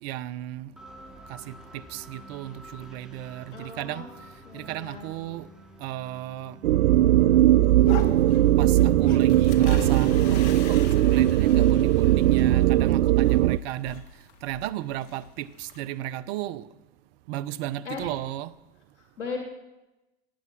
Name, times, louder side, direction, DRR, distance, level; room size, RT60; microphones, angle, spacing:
voice 1, 0.0-0.7 1.3-4.1 4.5-5.5 5.8-6.6 8.6-14.0 14.4-16.7 17.3-18.5, right 13 dB, 60° right, 17 dB, 0.8 m, -34 dB
sound 1, 0.8-12.5, equal, ahead, 2.7 m, -50 dB
voice 2, 3.5-4.1 4.4-5.1 17.8-18.1 18.9-19.4, left 4 dB, 90° left, 1 dB, 2.6 m, -37 dB
sound 2, 6.6-13.6, right 13 dB, 80° right, 0.5 m, -19 dB
sound 3, 7.6-15.9, left 6 dB, 65° left, 2.1 m, -41 dB
18.0 x 9.5 x 6.0 m, 0.99 s
hypercardioid pair, 100°, 35 cm